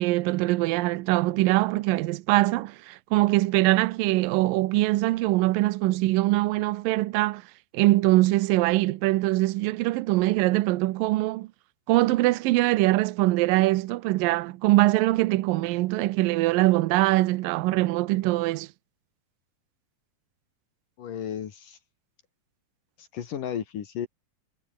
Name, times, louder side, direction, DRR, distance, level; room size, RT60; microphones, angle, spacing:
voice 1, 0.0-7.4 7.7-11.5 11.9-18.7, right 18 dB, 80° right, 2.5 m, -23 dB
voice 2, 21.0-21.8 23.0-24.1, left 9 dB, 70° left, 3.6 m, -34 dB
omnidirectional pair, 4.0 m